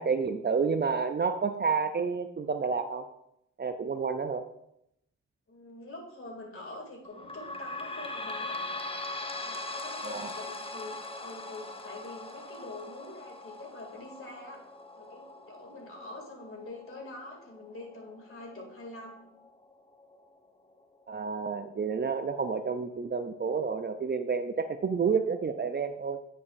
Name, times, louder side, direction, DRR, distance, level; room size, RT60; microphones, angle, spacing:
voice 1, 0.0-3.0 3.6-4.5 10.0-10.3 21.1-26.2, right 5 dB, 35° right, 9 dB, 0.5 m, -30 dB
voice 2, 5.5-8.6 9.4-14.6 15.0-19.3, left 2 dB, 45° left, 0 dB, 2.6 m, -45 dB
sound 1, 7.0-20.2 20.8-20.9 21.1-21.2 22.0-22.1, left 2 dB, 20° left, 0.8 m, -41 dB
9.3 x 5.1 x 2.6 m, 0.78 s
supercardioid pair, 50°, 30 cm